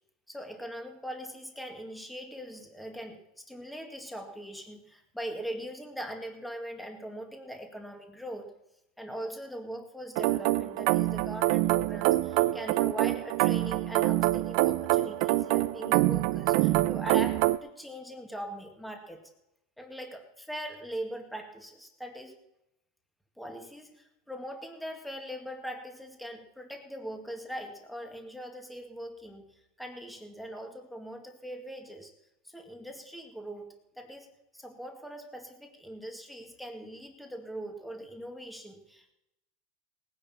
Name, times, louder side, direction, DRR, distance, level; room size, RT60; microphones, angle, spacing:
voice 1, 0.3-8.5 9.0-19.3 19.8-22.4 23.4-32.1 32.4-39.1, equal, ahead, 3 dB, 2.0 m, -41 dB
sound 1, 10.2-17.6, right 17 dB, 60° right, 0.6 m, -25 dB
19.5 x 10.0 x 4.4 m, 0.88 s
supercardioid pair, 140°, 0 cm